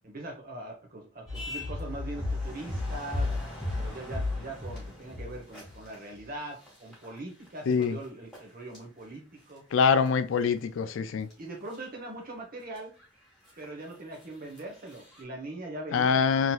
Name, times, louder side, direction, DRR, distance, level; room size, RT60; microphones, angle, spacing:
voice 1, 0.0-3.3 3.8-9.6 11.4-12.9 13.6-16.3, right 2 dB, 45° right, 1.2 m, -41 dB
sound 1, 1.3-6.3 6.7-7.2 7.5-7.8 8.3-8.4 8.7-8.8 10.1-10.6 11.3-11.4 11.6-11.8 12.7-12.8 13.0-13.1 13.5-13.6 14.6-14.7 14.9-15.2, left 2 dB, ahead, 2.0 m, -34 dB
voice 2, 7.7-8.0 9.7-11.3 15.9-16.5, left 6 dB, 75° left, 0.4 m, -24 dB
3.8 x 3.0 x 2.4 m
head